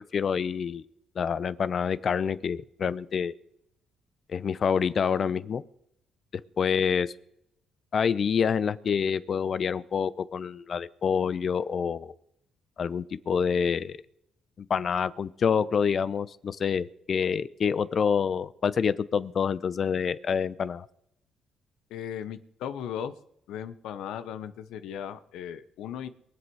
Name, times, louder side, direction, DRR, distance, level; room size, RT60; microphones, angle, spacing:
voice 1, 0.1-0.8 1.2-3.3 4.3-5.6 6.6-7.1 7.9-12.1 12.8-14.0 14.6-20.9, left 6 dB, 50° left, 17 dB, 0.7 m, -27 dB
voice 2, 21.9-23.1 23.5-26.1, left 9 dB, 85° left, 12 dB, 1.0 m, -37 dB
23.0 x 8.0 x 4.8 m, 0.77 s
cardioid pair, 90°, 0 cm